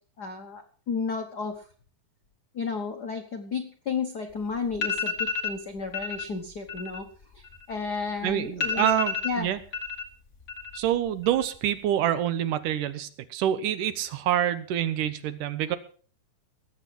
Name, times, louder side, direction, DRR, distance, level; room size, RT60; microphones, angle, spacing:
voice 1, 0.2-1.7 2.5-5.1 5.4-9.5, left 5 dB, 65° left, 5 dB, 1.0 m, -33 dB
sound 1, 4.3-4.4 4.7-5.6 5.9-6.3 6.6-8.0 8.3-8.4 8.6-10.0 10.3-10.9 11.2-11.8, left 6 dB, 35° left, 1.2 m, -31 dB
voice 2, 8.2-9.6 10.7-15.8, right 11 dB, 75° right, 13 dB, 2.4 m, -26 dB
19.5 x 8.2 x 6.0 m, 0.42 s
omnidirectional pair, 3.8 m